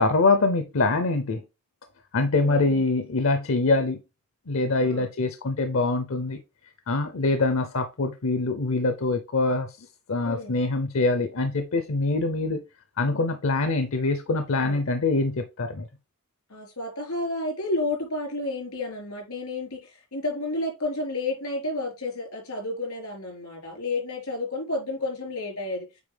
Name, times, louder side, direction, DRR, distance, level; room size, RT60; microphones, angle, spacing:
voice 1, 0.0-1.4 2.1-4.0 4.5-6.4 6.9-9.8 10.1-12.6 13.0-15.9, left 3 dB, 65° left, 0.7 m, -24 dB
voice 2, 2.4-2.8 4.8-5.1 10.2-10.6 14.5-14.8 16.5-25.9, left 2 dB, 90° left, 4.2 m, -31 dB
8.4 x 4.3 x 3.4 m
head